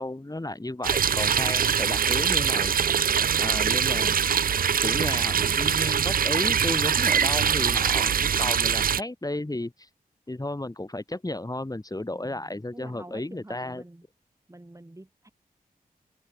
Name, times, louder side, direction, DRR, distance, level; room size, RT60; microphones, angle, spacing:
voice 1, 0.0-2.7 3.4-4.2 4.8-9.9 10.3-13.8, left 2 dB, 25° left, 6.0 m, -33 dB
sound 1, 0.8-9.0, right 7 dB, 70° right, 0.5 m, -23 dB
voice 2, 3.4-3.7 12.1-14.0 14.5-15.3, right 1 dB, 20° right, 6.7 m, -47 dB
open air
cardioid pair, 55°, 15 cm